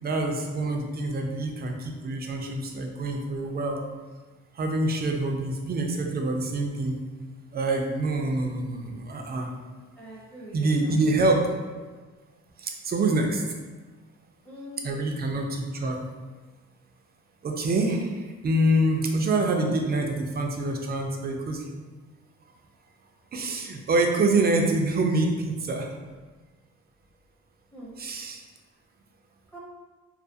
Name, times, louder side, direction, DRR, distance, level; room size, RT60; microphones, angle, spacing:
voice 1, 0.0-3.8 4.6-7.0 7.5-9.5 10.5-11.5 12.6-13.4 14.8-16.0 17.4-21.6 23.3-25.9 28.0-28.4, right 2 dB, 35° right, 3 dB, 0.4 m, -26 dB
voice 2, 10.0-11.3 11.9-12.0 14.4-15.0 27.7-27.9 29.5-29.6, equal, 5° left, -6 dB, 0.7 m, -43 dB
2.4 x 2.3 x 2.6 m, 1.3 s
cardioid pair, 90°, 30 cm